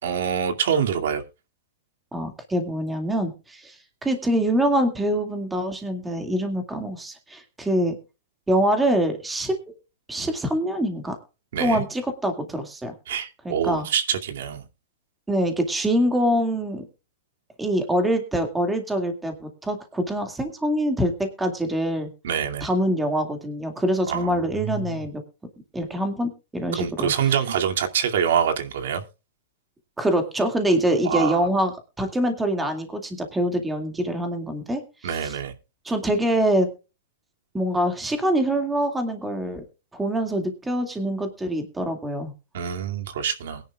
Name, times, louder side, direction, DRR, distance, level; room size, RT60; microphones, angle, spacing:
voice 1, 0.0-1.2 11.5-11.8 13.1-14.6 22.2-22.7 24.1-25.0 26.8-29.0 31.0-31.5 35.0-35.5 42.5-43.6, right 8 dB, 70° right, 4 dB, 2.4 m, -25 dB
voice 2, 2.1-7.9 8.5-9.6 10.1-11.2 11.6-12.9 13.4-13.9 15.3-16.8 17.6-22.1 22.6-25.2 25.7-27.1 30.0-31.7 32.0-34.8 35.2-35.3 35.8-36.7 37.5-39.6 39.9-42.3, right 1 dB, 5° right, 5 dB, 2.2 m, -24 dB
21.5 x 10.5 x 2.4 m, 0.30 s
supercardioid pair, 160°, 0 cm